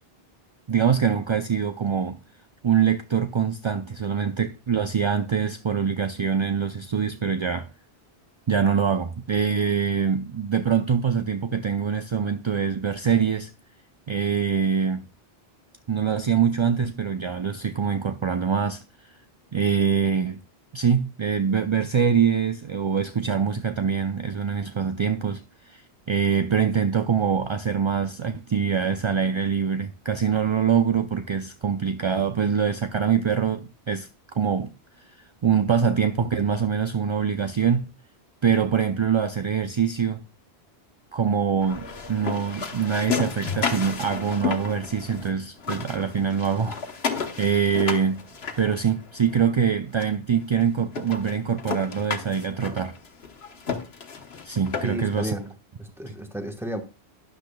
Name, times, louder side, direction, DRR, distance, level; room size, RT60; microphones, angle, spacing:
voice 1, 0.7-2.2 2.6-7.7 8.5-13.5 14.1-15.1 15.9-18.8 19.5-20.4 20.7-25.8 26.1-34.7 35.4-37.8 38.4-40.2 41.1-46.8 47.4-48.3 48.6-53.0 54.4-55.3, right 7 dB, 45° right, 0.4 m, -24 dB
sound 1, 41.6-45.3 45.6-49.3 50.0-50.1 50.5-50.6 50.9-55.2, left 5 dB, 75° left, 1.4 m, -32 dB
voice 2, 54.8-55.5 55.8-56.8, right 1 dB, ahead, 1.1 m, -32 dB
12.0 x 10.0 x 2.2 m
omnidirectional pair, 1.1 m